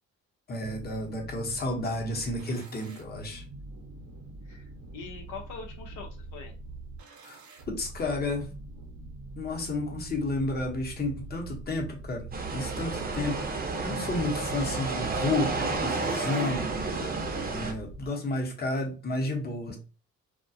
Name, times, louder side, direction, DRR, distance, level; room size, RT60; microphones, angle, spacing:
voice 1, 0.5-3.4 7.2-7.4 7.7-8.5 9.4-13.5 13.8-19.8, left 2 dB, 30° left, 0.8 m, -32 dB
sound 1, 0.6-18.1, right 3 dB, 70° right, 0.7 m, -44 dB
voice 2, 4.4-6.5, left 5 dB, 80° left, 0.7 m, -43 dB
sound 2, 12.3-17.7, right 3 dB, 30° right, 0.6 m, -31 dB
2.3 x 2.1 x 2.6 m
cardioid pair, 90°, 30 cm